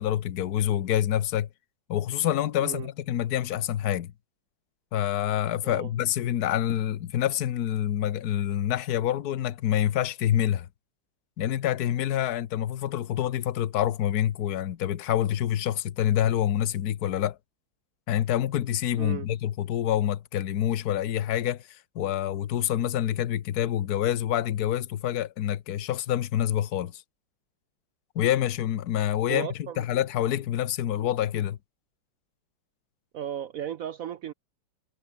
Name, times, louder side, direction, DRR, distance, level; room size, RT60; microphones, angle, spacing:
voice 1, 0.0-1.5 1.9-4.1 4.9-10.7 11.4-17.4 18.1-27.0 28.1-29.5 29.8-31.6, left 11 dB, 60° left, 1.4 m, -27 dB
voice 2, 19.0-19.3 29.3-29.8 33.1-34.3, right 10 dB, 70° right, 0.8 m, -35 dB
omnidirectional pair, 2.0 m